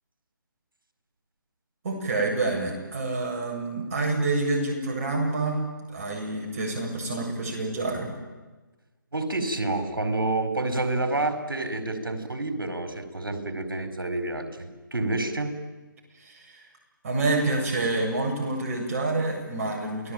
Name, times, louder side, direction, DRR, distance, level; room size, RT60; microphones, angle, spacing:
voice 1, 1.8-8.1 16.2-16.7 17.0-20.1, right 2 dB, 40° right, 1 dB, 7.7 m, -28 dB
voice 2, 9.1-15.5, right 2 dB, 85° right, 8 dB, 4.7 m, -28 dB
29.0 x 20.0 x 9.1 m, 1.2 s
figure-of-eight pair, 150°, 11 cm